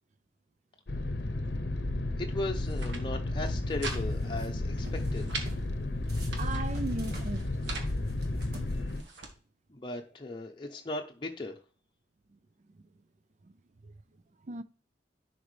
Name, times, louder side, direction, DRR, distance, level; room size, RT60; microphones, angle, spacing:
sound 1, 0.9-9.0, left 2 dB, 65° left, 0.8 m, -32 dB
voice 1, 2.2-5.3 8.8-8.9 9.7-11.6, left 2 dB, 25° left, 0.7 m, -37 dB
sound 2, 2.5-3.0 3.4-4.0 4.3-4.4 4.8-5.5 6.0-6.7 7.3-7.9 8.6-9.3, right 3 dB, 90° right, 1.4 m, -41 dB
sound 3, 3.9-4.5 4.8-5.7 6.1-9.3, right 2 dB, 60° right, 1.6 m, -50 dB
voice 2, 6.3-7.5 12.3-12.4 12.7-12.8 13.4-13.6 13.8-13.9 14.4-14.6, right 2 dB, 40° right, 0.4 m, -37 dB
10.5 x 4.4 x 3.2 m
head